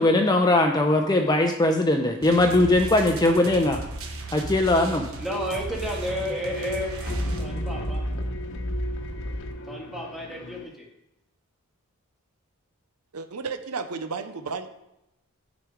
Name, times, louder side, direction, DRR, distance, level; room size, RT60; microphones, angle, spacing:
voice 1, 0.0-3.8 4.3-5.1, left 2 dB, 20° left, 3 dB, 0.7 m, -20 dB
sound 1, 2.2-7.8, right 2 dB, 65° right, 1.3 m, -36 dB
sound 2, 5.2-10.6, equal, 60° left, 1.0 m, -33 dB
voice 2, 5.2-8.0 9.7-10.9, equal, ahead, -3 dB, 2.1 m, -32 dB
voice 3, 13.1-14.7, right 4 dB, 85° right, 10 dB, 0.7 m, -32 dB
11.0 x 5.2 x 4.9 m, 0.88 s
head